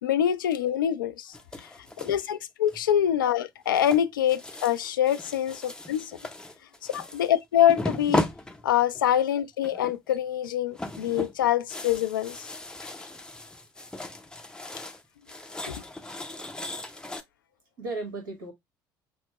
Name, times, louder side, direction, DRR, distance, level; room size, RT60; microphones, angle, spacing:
voice 1, 0.0-1.7 2.0-6.1 6.9-8.3 8.6-12.5 15.7-15.8, left 10 dB, 75° left, 0.4 m, -25 dB
sound 1, 1.3-2.2 2.7-3.1 3.7-7.3 7.7-9.1 9.6-10.2 10.4-15.0 15.3-17.2, left 1 dB, 5° left, 0.6 m, -36 dB
voice 2, 1.7-2.1 7.0-7.1 17.8-18.5, right 3 dB, 70° right, 1.4 m, -36 dB
5.9 x 2.0 x 2.9 m
figure-of-eight pair, 55°, 11 cm